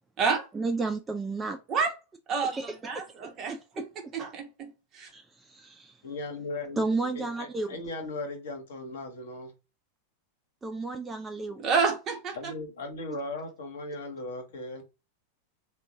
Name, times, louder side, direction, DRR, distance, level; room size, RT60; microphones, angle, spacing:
voice 1, 0.5-1.6 2.5-3.8 5.1-6.0 6.8-7.8 10.6-11.7, right 3 dB, 15° right, 0.4 m, -33 dB
voice 2, 2.8-3.9 4.1-5.1 11.6-12.5, right 5 dB, 30° right, 0.9 m, -29 dB
voice 3, 6.0-9.5 12.4-14.8, left 2 dB, 60° left, 1.1 m, -38 dB
3.8 x 2.2 x 3.6 m
figure-of-eight pair, 90°, 0 cm